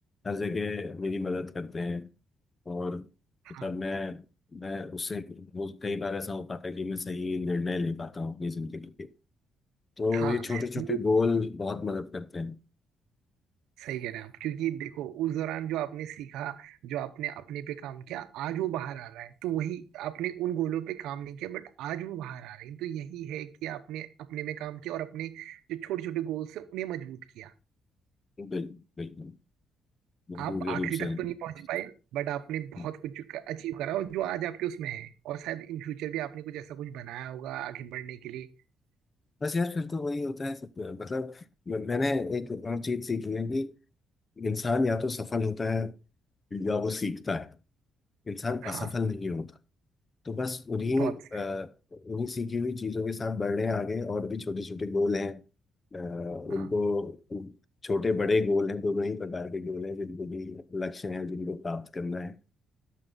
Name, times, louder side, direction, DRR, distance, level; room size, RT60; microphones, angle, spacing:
voice 1, 0.2-2.1 2.7-3.1 3.6-4.2 4.5-9.1 10.0-12.6 28.4-29.4 30.3-31.2 32.8-32.9 39.4-43.7 44.4-45.9 46.5-47.5 48.3-49.5 50.2-55.4 55.9-57.6 57.8-62.4, left 3 dB, 30° left, 0.7 m, -31 dB
voice 2, 10.1-11.0 13.8-27.5 30.3-38.5 48.6-48.9 51.0-51.1 56.5-56.7, right 12 dB, 90° right, 0.8 m, -35 dB
12.5 x 6.7 x 3.9 m
cardioid pair, 90°, 0 cm